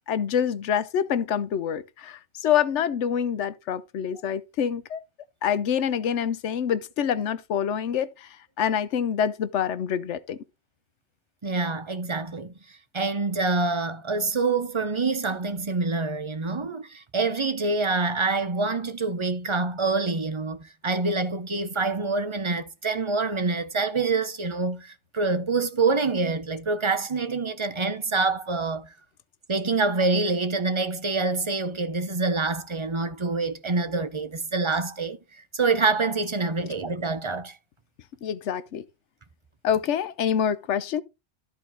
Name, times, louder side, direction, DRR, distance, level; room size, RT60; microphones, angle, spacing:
voice 1, 0.1-5.0 5.4-10.4 36.6-36.7 38.2-38.8 39.6-41.0, left 8 dB, 90° left, 1.0 m, -26 dB
voice 2, 11.4-12.5 12.9-28.9 29.5-35.2 35.5-37.6, right 3 dB, 30° right, 0.8 m, -26 dB
13.0 x 4.5 x 3.9 m
omnidirectional pair, 1.2 m